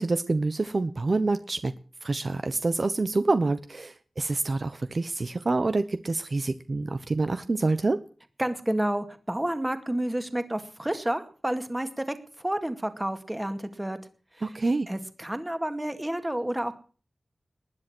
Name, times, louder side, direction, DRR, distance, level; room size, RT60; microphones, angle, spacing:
voice 1, 0.0-1.7 2.0-8.0 14.4-14.9, right 3 dB, 45° right, 11 dB, 1.0 m, -27 dB
voice 2, 8.4-12.0 12.4-14.0 14.4-14.5 14.9-16.7, right 1 dB, 10° right, 9 dB, 2.1 m, -30 dB
20.0 x 10.5 x 6.2 m, 0.41 s
wide cardioid pair, 100°, 0 cm